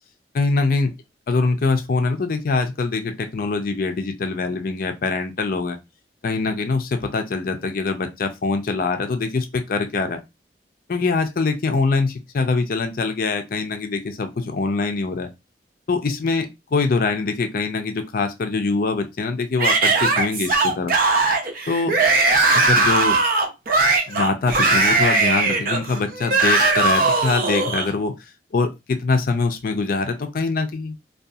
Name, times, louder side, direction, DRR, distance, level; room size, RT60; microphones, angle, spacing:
voice 1, 0.3-0.9 1.3-5.8 6.2-10.2 10.9-15.3 15.9-20.9 21.7-22.0 22.5-23.2 24.1-28.1 28.5-31.0, left 3 dB, 55° left, 0.5 m, -23 dB
Yell / Screaming, 19.6-27.9, right 3 dB, 55° right, 0.5 m, -19 dB
2.7 x 2.3 x 2.3 m
head